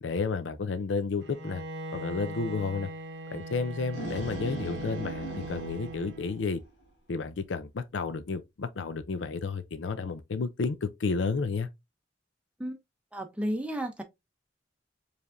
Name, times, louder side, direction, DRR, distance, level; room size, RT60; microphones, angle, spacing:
voice 1, 0.0-1.6 1.9-2.9 3.3-6.6 7.1-11.7, left 4 dB, 85° left, 0.5 m, -31 dB
Bowed string instrument, 1.2-6.6, right 2 dB, 70° right, 0.8 m, -40 dB
sound 1, 3.7-6.8, right 1 dB, 70° left, 1.3 m, -40 dB
voice 2, 13.1-14.0, equal, 5° right, 0.6 m, -32 dB
5.0 x 3.3 x 2.5 m
head